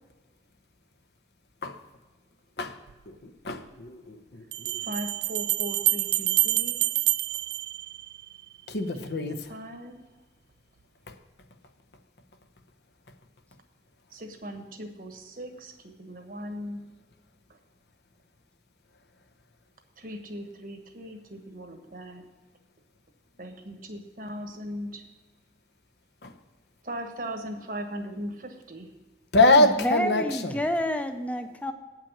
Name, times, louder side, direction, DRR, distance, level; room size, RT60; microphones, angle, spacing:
Bell, 2.9-3.0 4.5-8.4, right 16 dB, 70° right, 0.4 m, -27 dB
voice 1, 3.4-4.7 8.7-9.4 26.2-26.3 29.3-30.2, left 2 dB, 70° left, 6 dB, 0.9 m, -23 dB
voice 2, 4.8-7.0 9.0-10.0 14.1-16.8 17.5-17.6 20.0-22.3 23.4-25.1 26.8-28.9, equal, 50° right, 5 dB, 1.2 m, -39 dB
voice 3, 29.6-31.7, equal, 10° left, 7 dB, 0.6 m, -29 dB
8.8 x 6.0 x 7.1 m, 1.3 s
head